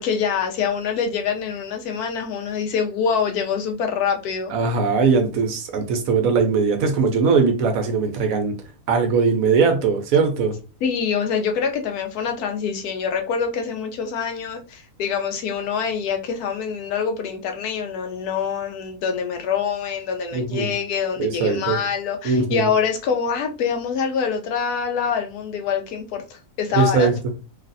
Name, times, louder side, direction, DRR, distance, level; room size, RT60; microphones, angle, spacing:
voice 1, 0.0-4.5 10.8-27.1, left 6 dB, 80° left, 1.1 m, -25 dB
voice 2, 4.5-8.5 8.9-10.5 20.3-20.7 21.2-21.8 22.2-22.7 26.7-27.2, right 5 dB, 70° right, 1.0 m, -20 dB
3.2 x 2.4 x 2.6 m
omnidirectional pair, 1.6 m